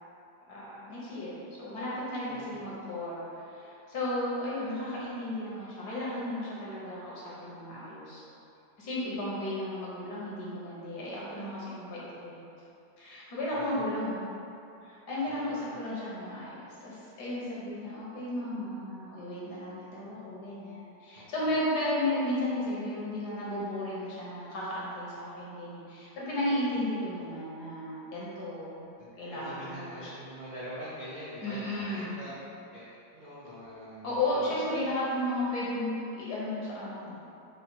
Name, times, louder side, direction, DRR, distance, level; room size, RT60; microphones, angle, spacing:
voice 1, 0.5-8.2 8.8-12.4 13.0-14.3 14.8-28.9 29.2-30.1 31.4-32.3 34.0-37.1, left 1 dB, 65° left, -7 dB, 1.7 m, -34 dB
voice 2, 2.3-2.7 13.5-13.9 15.3-15.7 21.1-21.2 29.0-32.3 32.7-32.9 33.1-34.8, equal, 55° right, -9 dB, 0.5 m, -44 dB
4.9 x 2.4 x 4.4 m, 2.8 s
omnidirectional pair, 1.9 m